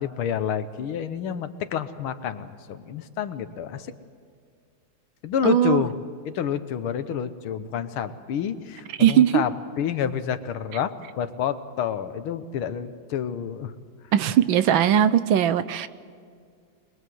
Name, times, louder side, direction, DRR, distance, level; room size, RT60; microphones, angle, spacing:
voice 1, 0.0-3.9 5.2-5.9 6.3-13.7, left 8 dB, 85° left, 11 dB, 1.9 m, -29 dB
voice 2, 5.4-5.8 9.0-9.4 14.1-15.9, right 10 dB, 75° right, 14 dB, 1.5 m, -19 dB
25.0 x 21.5 x 7.8 m, 2.2 s
omnidirectional pair, 2.3 m